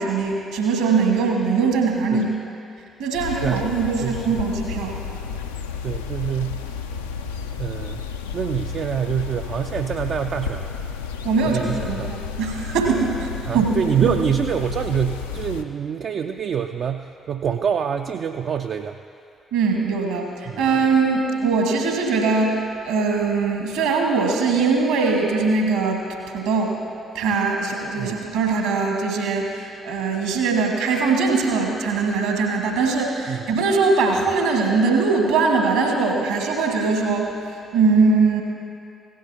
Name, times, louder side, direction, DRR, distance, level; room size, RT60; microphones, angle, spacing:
voice 1, 0.0-2.3 3.0-5.0 11.2-13.8 14.0-14.1 19.5-26.0 26.3-26.8 27.1-38.4, right 4 dB, 70° right, 1 dB, 1.5 m, -21 dB
sound 1, 3.1-15.6, left 6 dB, 80° left, 0.4 m, -32 dB
voice 2, 4.0-4.4 5.8-6.6 7.6-8.0 8.3-10.7 11.5-12.1 13.5-19.0 20.5-20.6 28.0-28.2 33.3-33.5, right 8 dB, 50° right, 5 dB, 0.3 m, -26 dB
16.5 x 12.0 x 2.8 m, 2.6 s
figure-of-eight pair, 40°, 0 cm